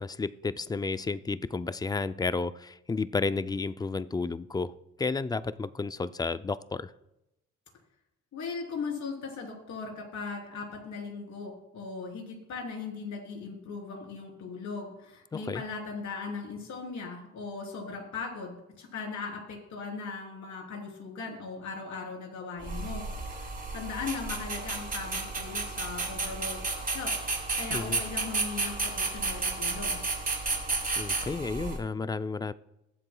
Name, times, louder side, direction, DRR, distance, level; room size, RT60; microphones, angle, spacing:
voice 1, 0.0-6.9 15.3-15.6 27.7-28.0 31.0-32.5, left 4 dB, 15° left, 0.4 m, -32 dB
voice 2, 8.3-27.1 27.6-30.0, left 4 dB, 70° left, 3.5 m, -38 dB
sound 1, 22.6-31.8, right 3 dB, 30° right, 2.9 m, -32 dB
22.0 x 7.7 x 2.3 m
cardioid pair, 90°, 30 cm